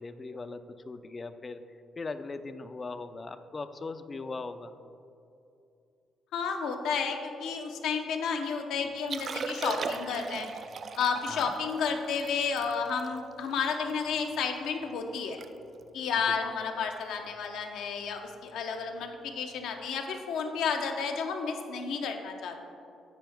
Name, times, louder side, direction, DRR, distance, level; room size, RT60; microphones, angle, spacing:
voice 1, 0.0-1.6 2.0-4.7 11.3-11.5 16.3-16.4, left 3 dB, 30° left, 10 dB, 0.4 m, -39 dB
voice 2, 6.3-10.5 11.0-15.4 15.9-22.6, left 5 dB, 85° left, 4 dB, 0.7 m, -31 dB
Liquid, 9.0-14.4 14.8-14.9 15.2-15.5 15.7-16.0 16.6-16.8 18.3-18.4, right 5 dB, 55° right, 0.3 m, -39 dB
9.2 x 4.6 x 3.4 m, 2.7 s
cardioid pair, 90°, 0 cm